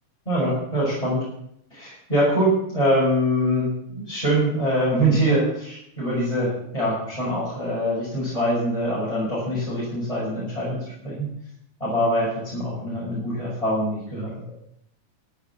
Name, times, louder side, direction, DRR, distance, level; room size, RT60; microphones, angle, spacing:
voice 1, 0.3-1.2 1.7-11.3 11.8-14.3, equal, 10° left, -7 dB, 6.4 m, -24 dB
14.5 x 8.2 x 8.6 m, 0.74 s
omnidirectional pair, 3.8 m